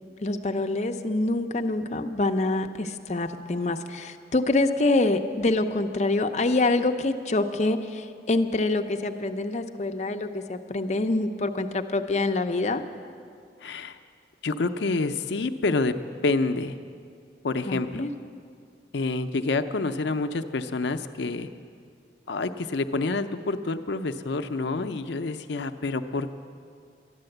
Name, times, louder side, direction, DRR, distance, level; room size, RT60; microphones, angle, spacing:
voice 1, 0.2-12.8 17.7-18.1, left 2 dB, 40° left, 6 dB, 0.6 m, -26 dB
voice 2, 13.6-14.0 14.4-15.9 16.2-16.7 17.4-18.0 18.9-21.5 22.3-26.3, left 3 dB, 80° left, 9 dB, 0.5 m, -28 dB
12.5 x 10.5 x 7.8 m, 2.3 s
head